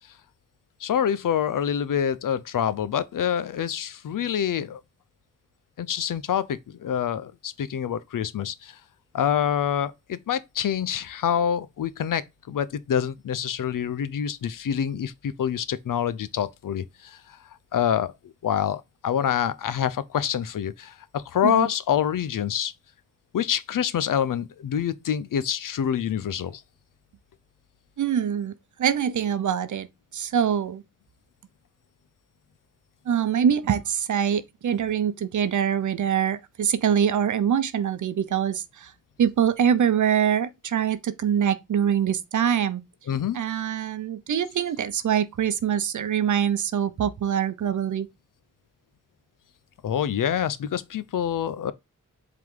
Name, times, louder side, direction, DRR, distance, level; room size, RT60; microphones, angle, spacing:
voice 1, 0.8-4.8 5.8-8.7 9.1-17.2 17.7-18.1 18.4-22.7 23.3-26.6 43.1-43.4 49.8-51.7, left 9 dB, 80° left, 0.7 m, -26 dB
voice 2, 28.0-28.5 28.8-29.9 30.1-30.8 33.1-38.9 39.2-42.8 43.3-48.1, right 8 dB, 65° right, 0.8 m, -24 dB
7.7 x 3.8 x 3.8 m
wide cardioid pair, 180°, 32 cm